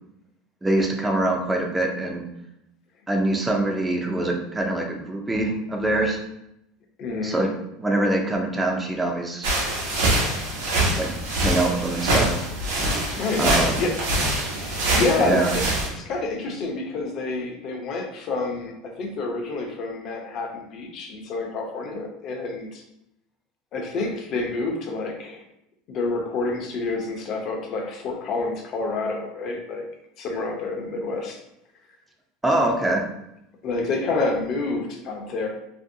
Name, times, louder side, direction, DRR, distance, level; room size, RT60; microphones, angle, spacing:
voice 1, 0.6-2.2 3.1-6.2 7.2-7.5 7.8-9.5 11.0-12.3 13.4-13.7 15.2-15.5 32.4-33.0, right 2 dB, 10° right, 2 dB, 0.4 m, -24 dB
voice 2, 7.0-7.4 13.2-14.0 14.4-22.8 23.7-25.4 25.9-29.8 30.2-31.4 33.6-35.5, left 3 dB, 40° left, 2 dB, 0.6 m, -28 dB
sound 1, 9.4-15.9, right 1 dB, 90° right, 0.9 m, -24 dB
2.8 x 2.6 x 2.6 m, 0.82 s
supercardioid pair, 150°, 0 cm